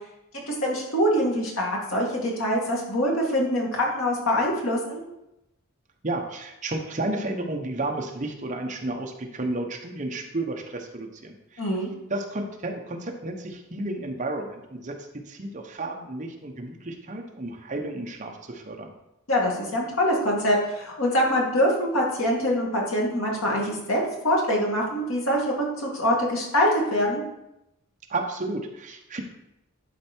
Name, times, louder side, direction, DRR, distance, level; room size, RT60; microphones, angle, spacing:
voice 1, 0.5-5.0 11.6-11.9 19.3-27.2, equal, 70° left, -2 dB, 2.4 m, -24 dB
voice 2, 6.0-11.6 12.1-18.9 28.1-29.2, right 2 dB, 35° right, 3 dB, 0.9 m, -32 dB
11.5 x 4.4 x 4.5 m, 0.88 s
head